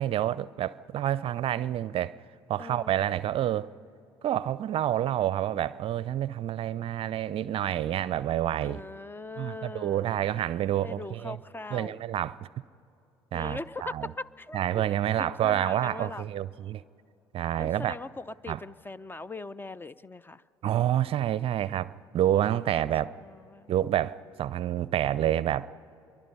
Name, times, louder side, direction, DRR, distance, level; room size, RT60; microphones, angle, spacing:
voice 1, 0.0-2.2 2.5-3.7 4.2-8.8 9.4-11.4 11.7-12.5 13.3-14.1 14.5-16.8 17.3-18.0 18.5-18.6 20.6-23.1 23.7-25.7, right 12 dB, 50° right, 0.5 m, -28 dB
voice 2, 2.6-3.0 8.6-10.1 10.8-12.0 13.3-14.8 15.2-16.3 17.6-20.4 22.4-22.9 23.2-23.7, left 2 dB, 15° left, 0.5 m, -40 dB
26.5 x 23.0 x 5.5 m
hypercardioid pair, 60°, 13 cm